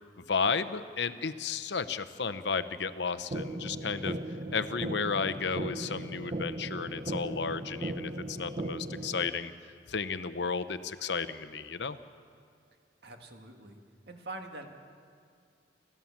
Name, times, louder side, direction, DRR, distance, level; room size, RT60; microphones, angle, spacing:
voice 1, 0.3-4.2 4.5-9.5 9.9-12.0, left 5 dB, 70° left, 12 dB, 0.8 m, -33 dB
sound 1, 3.3-9.3, right 1 dB, 40° right, 0.9 m, -37 dB
voice 2, 13.0-13.8 14.1-14.7, right 2 dB, 60° right, 3 dB, 2.1 m, -44 dB
29.5 x 13.0 x 7.4 m, 2.4 s
head